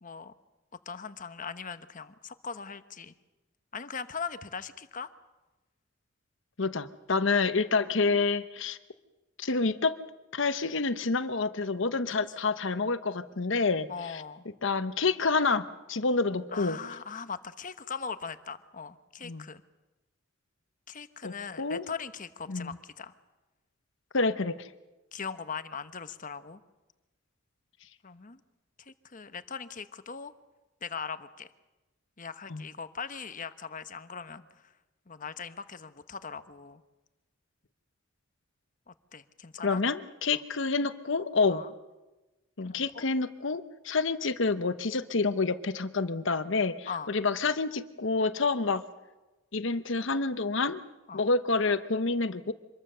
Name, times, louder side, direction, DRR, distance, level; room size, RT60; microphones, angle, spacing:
voice 1, 0.0-0.3 0.9-3.1 3.7-5.1 13.9-14.4 16.5-19.6 20.9-23.1 25.1-26.6 28.0-28.4 28.8-30.3 30.8-31.5 32.2-34.7 35.1-36.8 38.9-39.8 40.3-40.4 41.5-41.7 42.6-43.0 46.9-47.1 51.1-51.2, left 6 dB, 40° left, 11 dB, 1.0 m, -40 dB
voice 2, 6.6-8.8 9.4-10.0 10.3-14.2 14.6-16.8 19.2-19.4 21.2-21.8 22.5-22.8 24.1-24.7 32.5-32.6 39.6-41.6 42.6-48.8 49.5-50.8 51.1-52.5, left 4 dB, 65° left, 12 dB, 1.0 m, -28 dB
26.0 x 21.5 x 6.8 m, 1.1 s
head